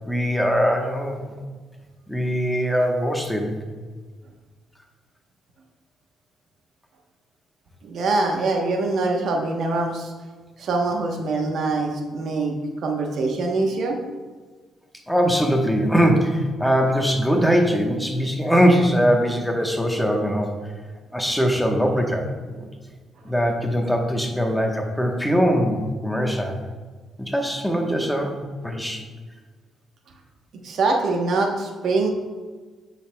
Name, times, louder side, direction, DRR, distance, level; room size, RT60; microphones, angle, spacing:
voice 1, 0.1-1.2 2.1-3.6 15.1-20.6 21.1-22.7 23.2-26.6 27.2-28.3 28.6-29.0, equal, ahead, 2 dB, 1.1 m, -21 dB
voice 2, 7.8-10.1 10.6-14.0 30.6-32.1, right 3 dB, 65° right, 2 dB, 1.0 m, -24 dB
9.1 x 6.6 x 2.3 m, 1.4 s
cardioid pair, 90°, 0 cm